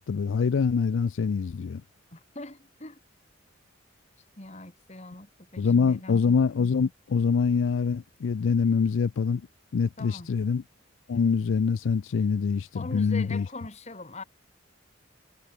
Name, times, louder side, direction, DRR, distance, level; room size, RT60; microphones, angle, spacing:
voice 1, 0.0-1.8 5.6-9.4 9.7-10.6 11.1-13.5, left 5 dB, 75° left, 0.4 m, -25 dB
voice 2, 2.1-3.0 4.4-6.2 10.0-10.3 12.7-14.2, left 2 dB, 35° left, 3.1 m, -42 dB
head